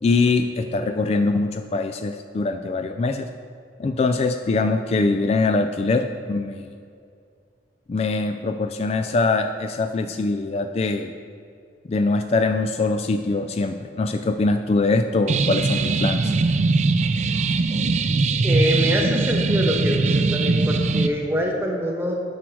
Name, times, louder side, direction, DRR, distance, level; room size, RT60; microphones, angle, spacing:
voice 1, 0.0-3.3 3.8-6.7 7.9-11.1 11.9-16.3, left 3 dB, 35° left, 7 dB, 0.3 m, -23 dB
sound 1, 15.3-21.1, right 3 dB, 40° right, 0.4 m, -21 dB
voice 2, 18.4-22.1, equal, 15° right, 0 dB, 1.1 m, -25 dB
10.0 x 6.1 x 4.6 m, 2.3 s
head